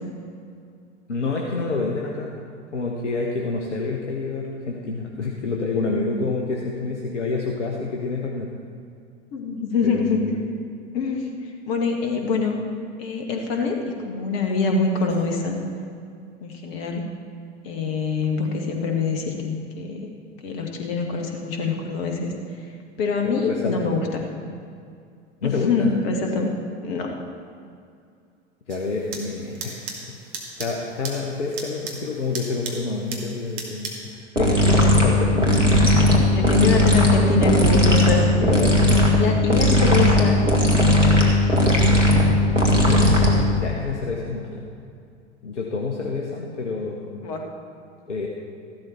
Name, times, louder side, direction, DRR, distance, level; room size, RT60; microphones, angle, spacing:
voice 1, 1.1-2.3 2.7-8.5 9.9-10.4 23.2-23.9 25.4-25.9 28.7-30.1 30.6-35.7 36.1-36.3 38.4-38.9 42.7-43.2 43.6-44.6 45.4-47.3 48.1-48.3, left 3 dB, 75° left, -1 dB, 1.2 m, -28 dB
voice 2, 9.3-10.2 10.9-11.3 11.7-12.6 13.0-13.8 14.0-15.6 16.4-17.0 17.6-20.1 20.4-22.3 23.0-24.2 25.4-26.5 26.8-27.1 36.3-38.2 38.8-40.4 40.7-40.9 41.3-41.4 47.2-47.4, left 4 dB, 55° left, 2 dB, 1.9 m, -24 dB
sound 1, 28.7-34.1, right 4 dB, 40° right, 2.2 m, -37 dB
sound 2, 34.4-43.6, left 1 dB, 85° right, 1.8 m, -17 dB
14.5 x 12.0 x 4.4 m, 2.4 s
figure-of-eight pair, 80°, 36 cm